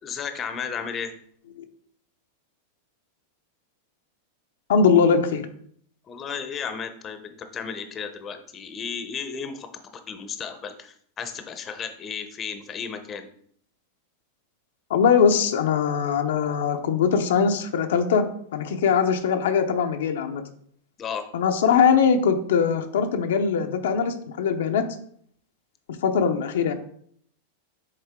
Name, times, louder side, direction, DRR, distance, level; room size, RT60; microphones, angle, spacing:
voice 1, 0.0-1.1 6.1-13.3 21.0-21.3, left 6 dB, 25° left, 8 dB, 0.7 m, -34 dB
voice 2, 4.7-5.5 14.9-18.3 18.5-20.4 21.3-24.8 26.0-26.7, left 6 dB, 80° left, 6 dB, 0.7 m, -21 dB
6.6 x 4.0 x 3.6 m, 0.63 s
supercardioid pair, 135°, 0 cm